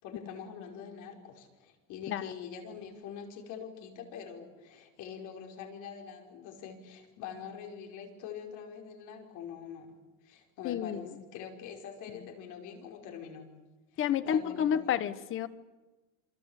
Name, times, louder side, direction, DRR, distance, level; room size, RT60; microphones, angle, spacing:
voice 1, 0.0-10.0 10.2-13.5 13.9-15.0, left 7 dB, 50° left, 2 dB, 5.4 m, -44 dB
voice 2, 10.6-11.1 14.0-15.5, left 9 dB, 30° left, 13 dB, 1.2 m, -30 dB
27.5 x 25.0 x 8.3 m, 1.1 s
cardioid pair, 175°, 39 cm